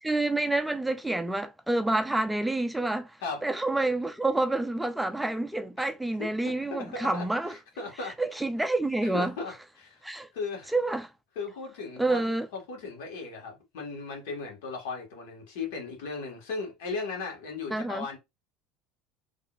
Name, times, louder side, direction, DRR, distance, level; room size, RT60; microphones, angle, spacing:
voice 1, 0.0-3.1 3.4-7.6 8.2-9.3 10.0-10.3 10.7-11.1 12.0-12.5 17.7-18.1, right 2 dB, 5° right, 0.4 m, -28 dB
voice 2, 6.2-8.1 9.0-10.0 10.3-10.7 11.3-12.2 12.5-18.2, left 4 dB, 85° left, 1.8 m, -37 dB
4.0 x 3.1 x 2.5 m
cardioid pair, 140°, 0 cm